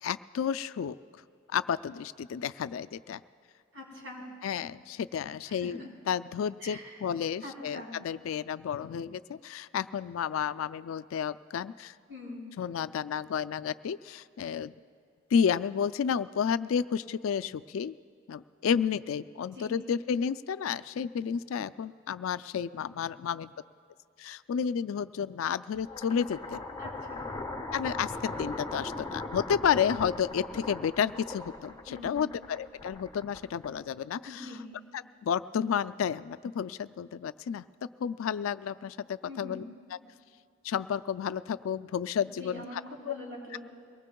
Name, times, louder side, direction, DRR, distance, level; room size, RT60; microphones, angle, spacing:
voice 1, 0.0-1.0 1.5-3.2 4.4-5.8 6.1-11.9 12.6-14.7 15.3-18.0 18.3-23.5 24.2-26.6 27.7-34.5 34.9-37.6 38.0-39.6 39.9-40.0 40.6-42.8 43.1-43.2, left 7 dB, 85° left, 15 dB, 0.3 m, -31 dB
voice 2, 3.7-4.2 5.4-5.9 6.6-7.0 7.4-7.9 12.1-12.5 19.5-19.7 26.8-27.2 31.9-32.3 34.2-34.6 39.3-39.6 42.3-43.6, left 2 dB, 75° right, -3 dB, 4.7 m, -43 dB
sound 1, 25.8-34.0, left 2 dB, 20° left, 0.8 m, -39 dB
23.0 x 19.0 x 2.3 m, 2.3 s
head